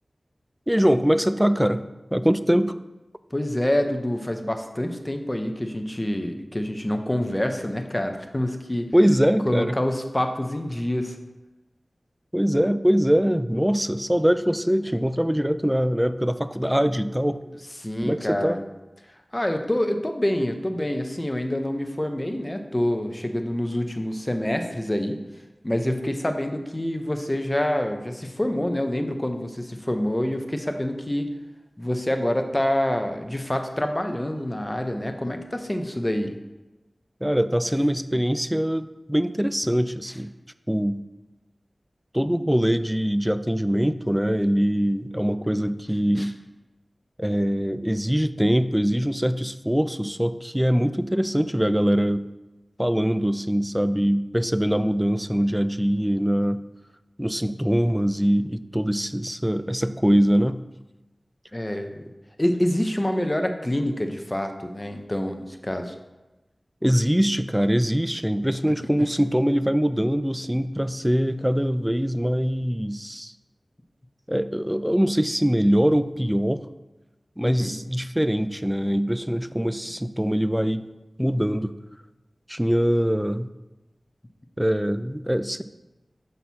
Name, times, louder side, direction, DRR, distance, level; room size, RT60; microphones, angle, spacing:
voice 1, 0.7-1.8 2.1-2.7 8.9-9.8 12.3-17.4 18.0-18.6 37.2-40.3 40.7-41.0 42.1-46.3 47.2-52.3 52.8-56.6 57.2-60.6 66.8-73.3 74.3-76.6 77.4-80.8 81.2-81.7 82.5-83.5 84.6-85.6, equal, 5° right, 12 dB, 0.3 m, -23 dB
voice 2, 3.3-8.9 9.5-11.2 17.8-18.6 19.3-25.2 25.6-31.3 31.8-36.3 46.2-46.3 61.5-62.0 62.4-65.9 77.4-77.7, left 1 dB, 20° left, 5 dB, 0.7 m, -26 dB
6.6 x 5.8 x 4.1 m, 1.1 s
wide cardioid pair, 70°, 0 cm